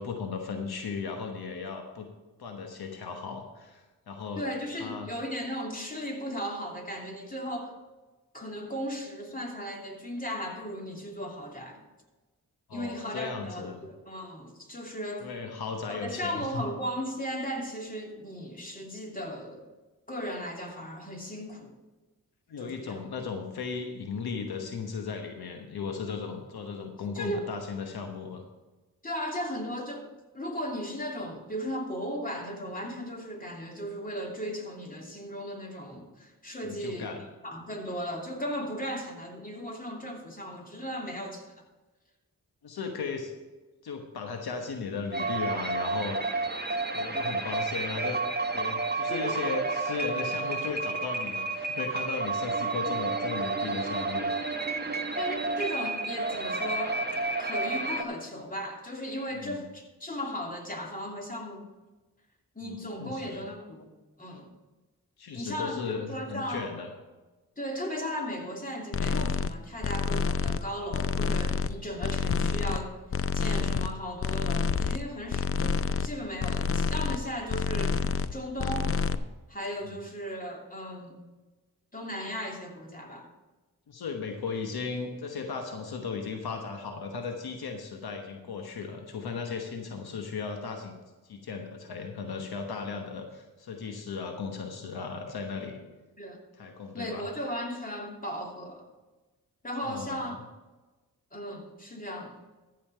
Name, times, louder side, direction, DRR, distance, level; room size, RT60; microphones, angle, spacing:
voice 1, 0.0-2.1 2.4-4.4 4.8-5.1 12.7-13.8 15.2-16.6 22.5-28.4 36.6-37.3 42.6-43.3 43.8-46.2 46.9-48.2 48.5-54.3 59.4-59.6 62.6-63.4 65.2-66.9 79.8-80.0 83.9-91.0 91.2-95.8 96.6-97.3 99.8-100.3, left 5 dB, 80° left, 4 dB, 1.1 m, -36 dB
voice 2, 4.4-7.8 8.3-11.8 12.7-15.3 15.9-19.7 20.1-21.8 22.6-23.0 27.1-27.5 29.0-37.1 37.4-41.5 49.1-49.4 55.2-57.0 57.4-61.7 62.5-63.9 64.2-64.5 65.3-66.7 67.6-73.0 73.3-78.9 79.5-81.2 81.9-83.3 96.2-96.4 96.9-98.9 99.6-100.3 101.3-102.4, equal, 20° left, 0 dB, 2.8 m, -36 dB
sound 1, 45.1-58.0, right 3 dB, 25° right, 1.2 m, -31 dB
sound 2, 68.9-69.5 69.8-70.6 70.9-71.7 72.0-72.8 73.1-73.9 74.2-75.0 75.3-76.1 76.4-77.2 77.5-78.3 78.6-79.2, left 5 dB, 35° left, 0.5 m, -28 dB
14.0 x 5.6 x 5.6 m, 1.2 s
cardioid pair, 45°, 37 cm